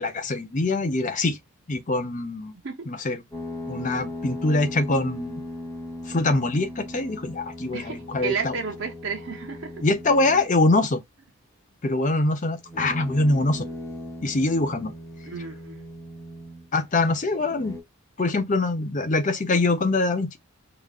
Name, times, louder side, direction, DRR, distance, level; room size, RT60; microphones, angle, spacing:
voice 1, 0.0-1.4 1.7-2.5 2.9-3.2 3.7-5.4 6.1-8.5 9.8-11.0 11.8-13.7 14.2-14.9 16.7-17.7 18.2-20.4, left 2 dB, 35° left, 0.6 m, -24 dB
sound 1, 3.3-10.6 12.6-16.8 17.5-17.8, left 1 dB, 15° left, 0.9 m, -38 dB
voice 2, 7.7-9.8 15.3-15.8 17.4-17.6, right 5 dB, 55° right, 0.7 m, -32 dB
4.9 x 2.4 x 2.3 m
head